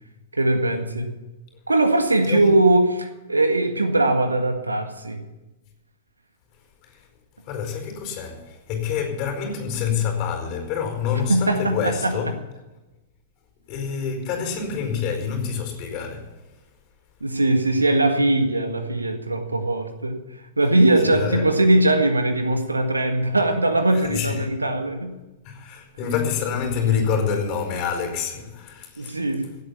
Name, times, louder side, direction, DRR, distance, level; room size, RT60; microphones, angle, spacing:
voice 1, 0.3-1.1 1.7-5.2 11.3-12.3 17.2-25.1 29.0-29.6, right 2 dB, 80° right, 1.7 m, -21 dB
voice 2, 2.2-2.7 6.8-7.1 7.4-12.3 13.7-16.3 21.0-21.5 23.9-24.5 25.4-29.2, left 7 dB, 40° left, 4.5 m, -27 dB
16.5 x 8.5 x 7.1 m
figure-of-eight pair, 100°, 0 cm